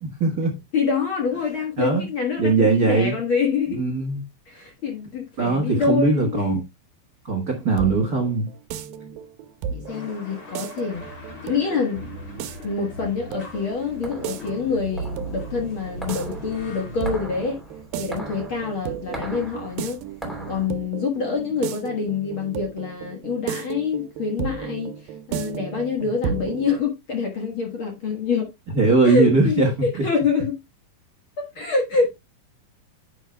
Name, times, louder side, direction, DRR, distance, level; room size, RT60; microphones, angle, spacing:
voice 1, 0.0-0.6 1.8-2.0 2.4-3.1 3.7-4.2 5.4-6.6 7.2-8.5 28.7-29.7, right 3 dB, 70° right, 0.8 m, -20 dB
voice 2, 0.7-3.8 4.5-6.6 9.7-11.0 11.4-12.0 12.6-17.6 18.0-20.0 20.5-24.9 25.3-28.5 29.0-30.6 31.4-32.1, left 5 dB, 50° left, 1.6 m, -26 dB
sound 1, 7.4-26.8, right 8 dB, 85° right, 2.5 m, -34 dB
sound 2, 9.9-17.1, right 1 dB, 25° left, 3.0 m, -38 dB
sound 3, 13.7-20.7, equal, ahead, 2.4 m, -39 dB
10.0 x 7.7 x 2.2 m
omnidirectional pair, 4.1 m